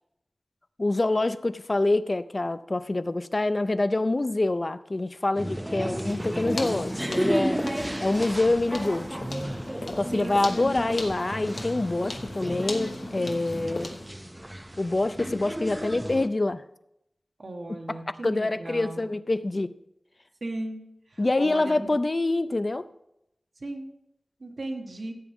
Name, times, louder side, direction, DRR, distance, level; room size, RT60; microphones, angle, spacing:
voice 1, 0.8-7.6 8.0-9.2 9.9-13.9 14.8-16.6 17.9-18.0 18.2-19.7 21.2-22.8, left 2 dB, 45° left, 13 dB, 0.5 m, -26 dB
sound 1, 5.3-16.3, right 1 dB, 10° right, 0.5 m, -33 dB
sound 2, 6.0-14.2, left 2 dB, 85° left, 1.1 m, -38 dB
voice 2, 17.4-19.1 20.4-20.8 21.1-21.9 23.6-23.9 24.4-25.1, right 2 dB, 75° right, 2 dB, 1.5 m, -36 dB
16.0 x 8.3 x 3.6 m, 0.83 s
wide cardioid pair, 70°, 0 cm